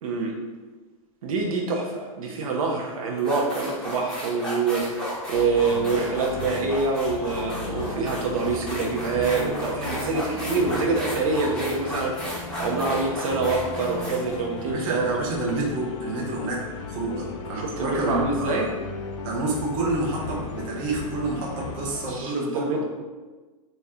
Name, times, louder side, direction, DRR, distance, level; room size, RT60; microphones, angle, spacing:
voice 1, 0.0-0.4 1.2-15.2 17.6-18.7 22.1-22.8, right 4 dB, 75° right, 0 dB, 0.7 m, -26 dB
sound 1, 2.6-2.7 3.2-15.5, equal, 5° left, 0.6 m, -34 dB
sound 2, 5.3-22.2, left 4 dB, 55° left, 0.5 m, -36 dB
voice 2, 14.7-18.6 19.2-22.8, right 2 dB, 30° right, -3 dB, 0.8 m, -29 dB
4.1 x 2.2 x 3.6 m, 1.3 s
supercardioid pair, 165°, 18 cm